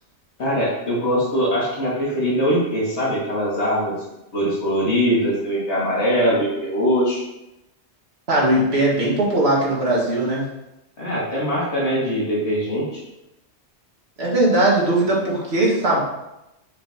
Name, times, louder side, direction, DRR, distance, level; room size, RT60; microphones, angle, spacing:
voice 1, 0.4-4.0 4.3-7.2 11.0-13.0, equal, 80° left, -5 dB, 2.2 m, -22 dB
voice 2, 8.3-10.5 14.2-16.0, right 1 dB, 70° right, -4 dB, 1.9 m, -19 dB
7.3 x 5.4 x 2.8 m, 0.92 s
omnidirectional pair, 1.1 m